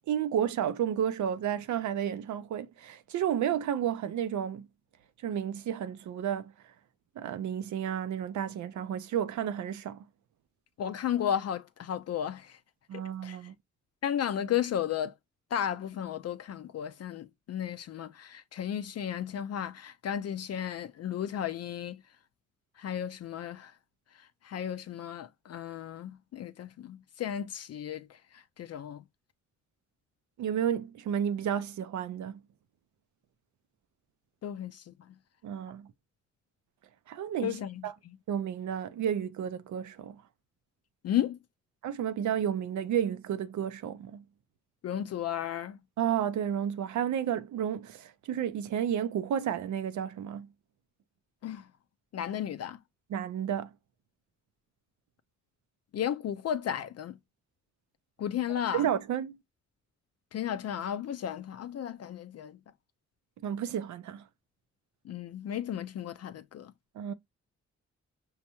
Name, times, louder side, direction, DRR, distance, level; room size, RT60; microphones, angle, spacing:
voice 1, 0.1-4.7 5.2-6.7 7.2-10.0 12.9-13.5 30.4-32.4 35.4-35.9 37.1-37.9 38.3-40.2 41.8-44.2 46.0-50.5 53.1-53.7 58.7-59.4 63.4-64.3 66.9-67.1, right 9 dB, 75° right, 0.5 m, -32 dB
voice 2, 10.8-12.6 13.2-13.4 14.0-15.1 15.5-22.0 22.8-23.7 24.2-29.0 34.4-34.9 37.4-37.8 41.0-41.4 44.8-45.8 51.4-51.7 52.1-52.8 55.9-57.2 58.2-58.9 60.3-62.6 65.0-66.7, left 10 dB, 55° left, 0.4 m, -34 dB
5.5 x 2.2 x 2.8 m
supercardioid pair, 50°, 29 cm